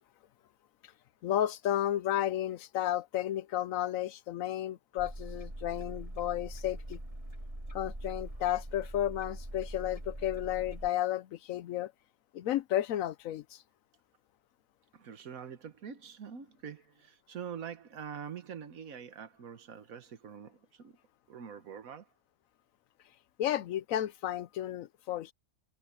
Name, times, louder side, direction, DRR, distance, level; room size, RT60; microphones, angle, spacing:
voice 1, 1.2-7.0 7.7-11.9 12.3-13.6 23.4-25.3, left 12 dB, 70° left, 1.0 m, -32 dB
sound 1, 5.0-10.9, right 1 dB, 20° right, 4.6 m, -42 dB
voice 2, 14.9-21.0 21.3-22.1, right 7 dB, 70° right, 1.6 m, -45 dB
omnidirectional pair, 1.5 m